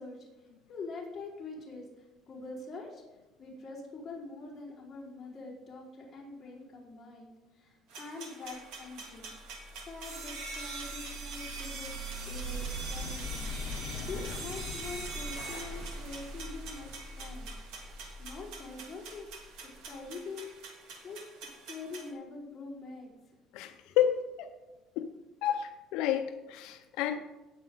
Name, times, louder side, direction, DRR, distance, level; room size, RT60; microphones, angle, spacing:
voice 1, 0.0-3.0 3.4-9.3 9.8-11.9 12.2-13.4 14.0-16.9 17.2-17.5 18.2-19.2 19.6-20.4 21.0-21.2 21.7-23.1 23.5-24.0, left 3 dB, 20° left, -6 dB, 4.8 m, -44 dB
sound 1, 7.9-22.1, right 4 dB, 75° right, 3.4 m, -44 dB
sound 2, 9.2-20.0, left 1 dB, 60° left, 1.2 m, -42 dB
voice 2, 23.5-24.5 25.0-25.1 25.4-27.2, left 10 dB, 80° left, 7 dB, 0.7 m, -30 dB
18.0 x 8.4 x 4.0 m, 1.1 s
cardioid pair, 160°, 0 cm